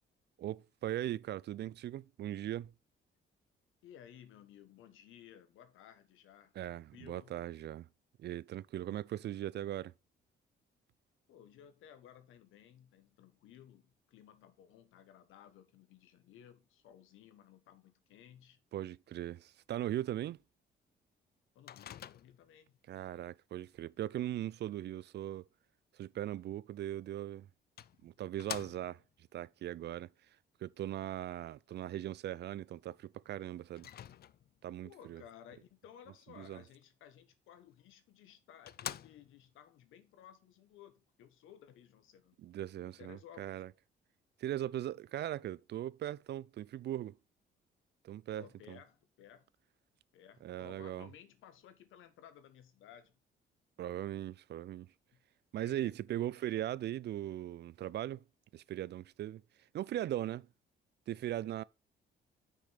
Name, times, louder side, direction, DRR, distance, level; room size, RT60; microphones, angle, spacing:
voice 1, 0.4-2.7 6.6-7.9 8.2-9.9 18.7-20.4 22.9-25.4 26.0-27.5 28.0-29.0 29.3-30.1 30.6-33.9 34.6-35.2 36.4-36.6 42.4-43.7 44.4-47.2 48.0-48.8 50.4-51.1 53.8-54.9 55.5-58.2 58.5-59.4 59.7-60.5 61.1-61.6, right 12 dB, 60° right, 0.4 m, -39 dB
voice 2, 3.8-7.4 8.9-9.2 11.3-18.6 21.5-22.8 34.8-42.4 42.8-43.4 48.4-49.5 50.1-53.2 55.1-55.2 55.6-56.0, left 10 dB, 85° left, 1.3 m, -57 dB
Microwave oven, 21.7-22.6 26.9-27.0 27.8-29.1 33.8-34.7 37.8-37.9 38.3-38.4 38.7-39.5, left 10 dB, 50° left, 0.5 m, -46 dB
6.2 x 5.2 x 5.7 m
cardioid pair, 90°, 20 cm